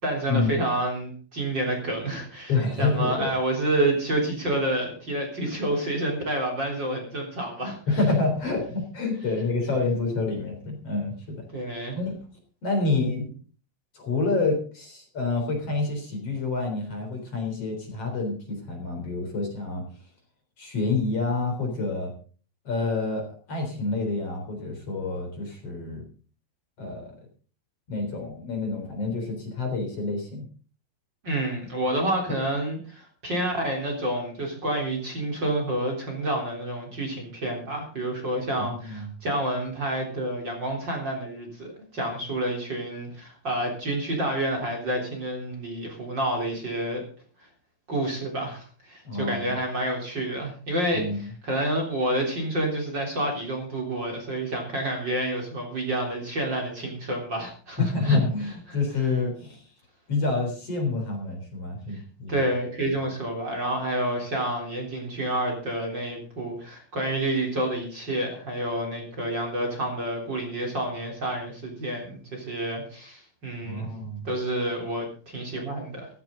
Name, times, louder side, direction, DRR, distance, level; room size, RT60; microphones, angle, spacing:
voice 1, 0.0-7.8 11.5-12.0 31.2-47.0 47.9-58.2 58.7-58.8 61.9-62.0 62.3-73.9 74.2-76.1, right 1 dB, 30° right, 1 dB, 4.0 m, -29 dB
voice 2, 2.5-3.3 7.9-11.5 11.9-12.2 12.6-13.4 13.9-19.8 20.6-22.1 22.6-23.2 23.5-26.0 26.8-27.1 27.9-30.5 38.6-39.1 49.0-49.6 50.9-51.3 57.8-59.7 60.1-62.5 62.9-63.0 73.6-74.3, left 3 dB, 40° left, 3 dB, 4.5 m, -28 dB
15.0 x 14.5 x 3.8 m, 0.39 s
omnidirectional pair, 4.2 m